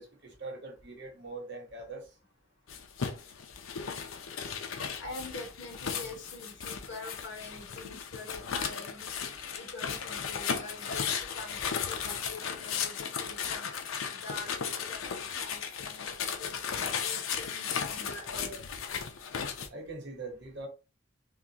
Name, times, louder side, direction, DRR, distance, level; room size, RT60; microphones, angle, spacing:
voice 1, 0.0-2.1 19.7-20.7, right 2 dB, 60° right, 1.2 m, -42 dB
sound 1, 2.7-19.7, left 7 dB, 80° left, 0.6 m, -36 dB
voice 2, 5.0-13.7 14.1-16.1 16.4-16.5 17.0-18.6, left 2 dB, 65° left, 1.4 m, -45 dB
3.6 x 2.4 x 2.8 m
head